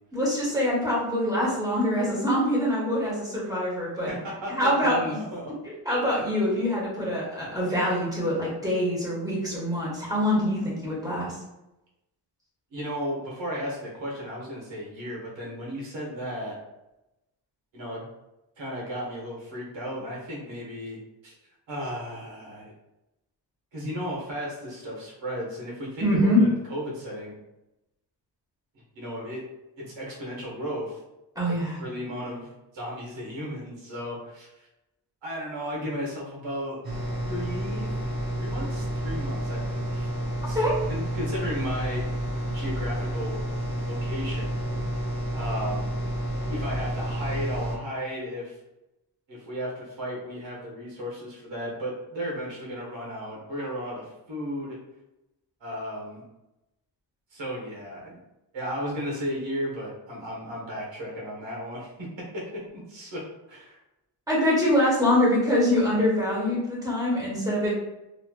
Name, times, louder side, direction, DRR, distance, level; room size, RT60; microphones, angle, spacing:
voice 1, 0.1-4.1 4.6-5.0 5.8-11.3 26.0-26.4 31.3-31.8 40.5-40.7 64.3-67.7, left 1 dB, 10° right, -6 dB, 1.3 m, -24 dB
voice 2, 4.1-5.5 12.7-16.6 17.7-18.1 18.6-21.3 21.7-22.7 23.7-27.3 28.9-29.4 29.8-31.0 31.5-32.5 32.7-34.7 35.2-36.8 37.2-37.9 38.4-40.1 40.5-40.6 40.9-42.0 42.5-43.4 43.9-44.6 45.3-45.9 46.5-48.6 49.3-54.8 55.6-56.2 57.3-58.2 58.5-62.5 62.7-63.2 63.5-63.8, equal, 90° right, -3 dB, 1.3 m, -34 dB
sound 1, 36.8-47.8, right 1 dB, 55° right, 0.8 m, -30 dB
3.1 x 2.8 x 2.2 m, 0.94 s
wide cardioid pair, 110°, 44 cm